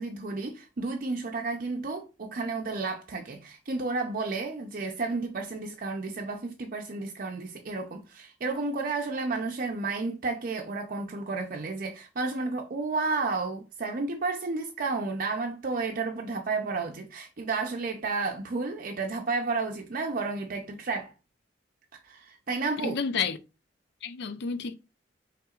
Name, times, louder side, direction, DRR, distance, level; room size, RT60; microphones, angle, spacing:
voice 1, 0.0-21.1 22.0-23.0, right 3 dB, 50° right, 0.5 m, -32 dB
voice 2, 22.8-23.4 24.0-24.7, left 5 dB, 65° left, 0.5 m, -30 dB
5.7 x 3.5 x 2.4 m
head